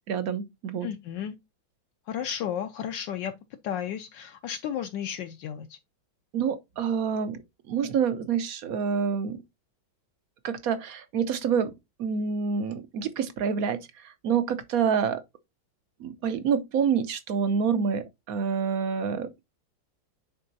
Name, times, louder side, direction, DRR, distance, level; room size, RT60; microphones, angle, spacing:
voice 1, 0.0-0.9 6.3-7.4 7.7-9.4 10.4-11.7 12.0-15.2 16.0-19.3, right 7 dB, 65° right, 0.9 m, -27 dB
voice 2, 0.8-1.4 2.1-3.3 3.6-5.8, left 9 dB, 75° left, 1.2 m, -33 dB
9.8 x 3.8 x 2.6 m
omnidirectional pair, 2.2 m